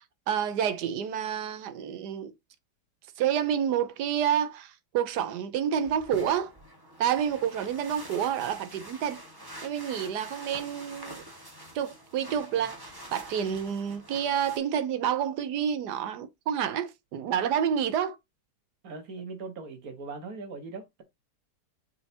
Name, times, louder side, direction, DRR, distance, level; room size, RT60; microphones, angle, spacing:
voice 1, 0.0-2.3 3.2-6.5 7.0-9.2 9.6-11.2 11.7-12.8 13.1-18.2, right 9 dB, 75° right, 1.3 m, -29 dB
sound 1, 5.8-14.6, equal, 15° right, 1.7 m, -46 dB
voice 2, 18.8-21.0, right 4 dB, 60° right, 1.8 m, -40 dB
7.5 x 4.5 x 2.8 m
omnidirectional pair, 1.8 m